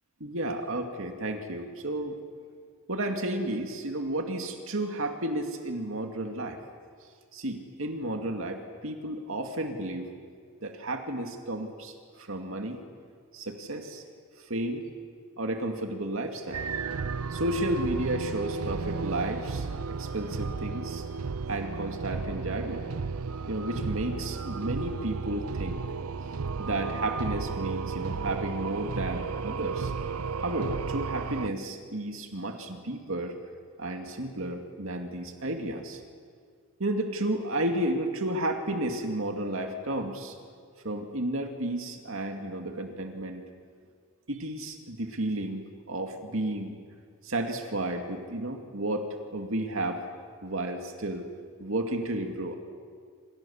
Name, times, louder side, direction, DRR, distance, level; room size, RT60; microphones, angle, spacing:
voice 1, 0.2-2.2 2.9-6.6 7.3-10.1 10.6-12.8 13.3-14.0 14.4-14.8 15.4-16.7 17.3-19.7 20.0-21.0 21.5-22.9 23.5-25.8 26.6-29.9 30.4-33.3 33.8-36.0 36.8-40.4 40.8-43.4 44.3-46.8 47.2-49.1 49.3-50.0 50.4-51.3 51.6-52.6, right 1 dB, 65° right, 4 dB, 2.4 m, -32 dB
sound 1, 16.5-31.5, right 5 dB, 80° right, 0.6 m, -33 dB
28.0 x 27.0 x 7.2 m, 2.1 s
head